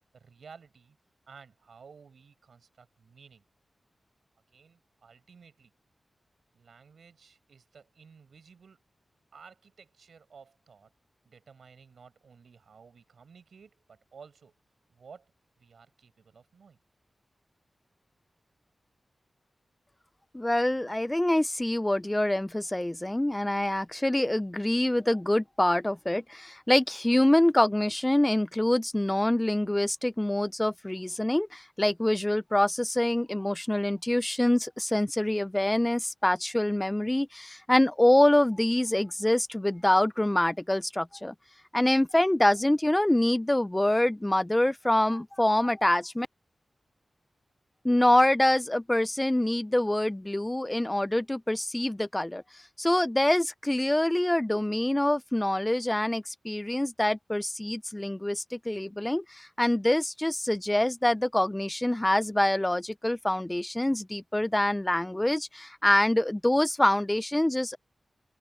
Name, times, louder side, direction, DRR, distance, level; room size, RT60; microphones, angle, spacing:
voice 1, 0.1-1.0 1.3-3.4 4.5-5.7 6.5-8.9 9.3-10.9 11.3-14.5 14.9-15.3 15.6-16.8, right 5 dB, 90° right, 5.5 m, -54 dB
voice 2, 20.3-41.3 41.7-46.3 47.8-67.8, left 1 dB, 10° left, 0.3 m, -25 dB
wide cardioid pair, 115°, 0 cm